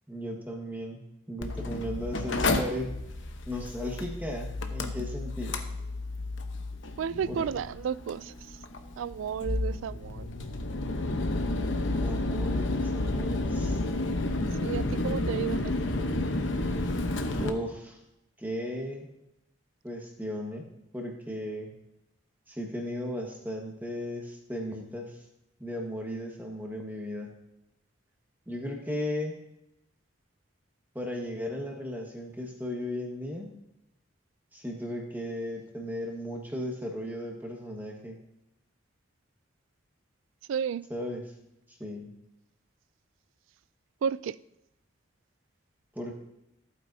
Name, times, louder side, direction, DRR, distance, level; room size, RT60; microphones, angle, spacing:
voice 1, 0.1-1.0 1.3-3.0 3.5-5.6 7.3-7.4 12.0-13.8 17.3-18.0 18.4-19.1 19.8-20.7 20.9-21.7 22.5-25.2 25.6-27.3 28.5-29.4 30.9-33.5 34.5-38.2 40.9-41.3 41.8-42.1 45.9-46.1, left 1 dB, 10° right, 1.5 m, -36 dB
Mechanical fan, 1.4-17.5, left 2 dB, 75° left, 0.9 m, -31 dB
voice 2, 7.0-8.3 9.0-10.3 14.6-15.7 40.5-40.8 44.0-44.4, right 7 dB, 85° right, 0.3 m, -32 dB
15.0 x 8.8 x 2.7 m
head